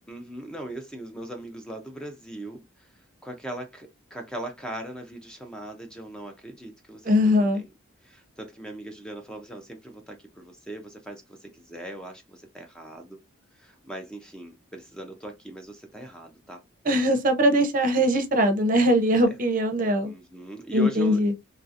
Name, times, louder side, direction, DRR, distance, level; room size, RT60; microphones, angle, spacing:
voice 1, 0.1-7.1 7.5-7.7 8.0-13.2 13.5-16.6 19.2-19.4 20.0-21.2, right 1 dB, 5° left, 0.4 m, -39 dB
voice 2, 7.0-7.6 16.9-20.1 20.7-21.3, equal, 40° right, 0.6 m, -21 dB
3.1 x 2.7 x 2.4 m
head